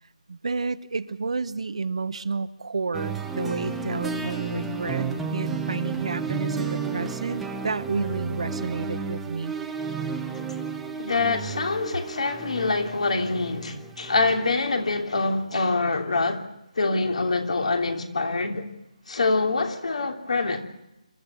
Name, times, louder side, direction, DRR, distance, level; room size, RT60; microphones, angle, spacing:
voice 1, 0.3-9.6, right 4 dB, 60° right, 0.9 m, -30 dB
sound 1, 2.9-14.4, right 5 dB, 5° right, 0.9 m, -32 dB
voice 2, 11.0-16.4 16.8-18.6 19.1-20.6, left 3 dB, 65° left, 3.0 m, -25 dB
26.5 x 13.0 x 8.4 m
figure-of-eight pair, 165°, 4 cm